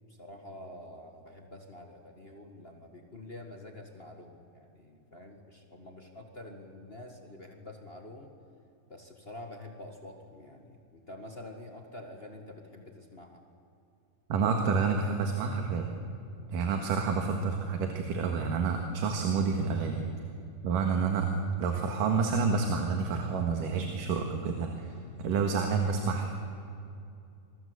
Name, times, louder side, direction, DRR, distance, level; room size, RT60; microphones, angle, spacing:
voice 1, 0.1-8.3 8.9-13.4, left 1 dB, 35° left, 3 dB, 1.0 m, -47 dB
voice 2, 14.3-15.9 16.5-20.0 20.6-21.3 21.6-26.3, right 5 dB, 70° right, 3 dB, 3.2 m, -29 dB
26.5 x 21.5 x 8.1 m, 2.5 s
omnidirectional pair, 4.1 m